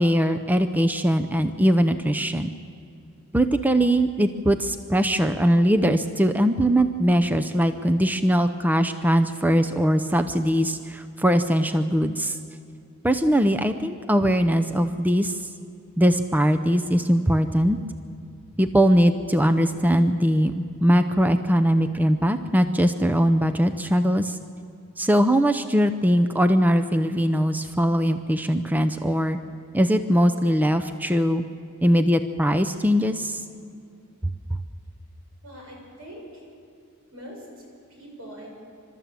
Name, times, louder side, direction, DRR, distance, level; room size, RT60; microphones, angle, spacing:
voice 1, 0.0-2.5 3.3-12.4 13.0-15.3 16.0-17.8 18.6-24.3 25.0-29.4 29.7-31.4 31.8-33.4, equal, 10° right, 7 dB, 0.6 m, -21 dB
voice 2, 35.4-36.4 37.1-37.7 38.0-38.5, equal, 85° right, -1 dB, 7.1 m, -42 dB
29.0 x 13.0 x 7.5 m, 2.5 s
head